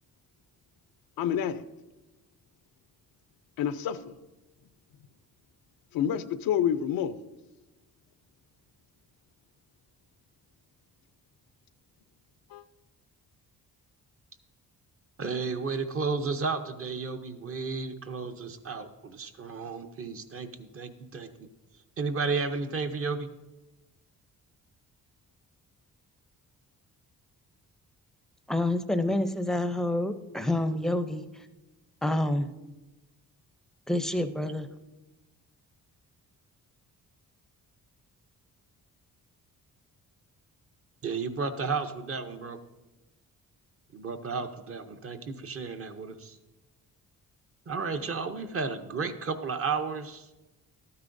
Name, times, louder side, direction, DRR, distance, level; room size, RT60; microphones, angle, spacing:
voice 1, 1.2-1.6 3.6-4.0 5.9-7.1 12.5-12.6, left 9 dB, 90° left, 13 dB, 0.6 m, -28 dB
voice 2, 15.2-21.5 22.0-23.3 41.0-42.6 43.9-46.4 47.7-50.3, right 4 dB, 40° right, 7 dB, 0.7 m, -33 dB
voice 3, 28.5-31.2 32.0-32.5 33.9-34.7, left 1 dB, ahead, 9 dB, 0.5 m, -28 dB
12.5 x 9.6 x 2.6 m, 1.0 s
cardioid pair, 100°, 34 cm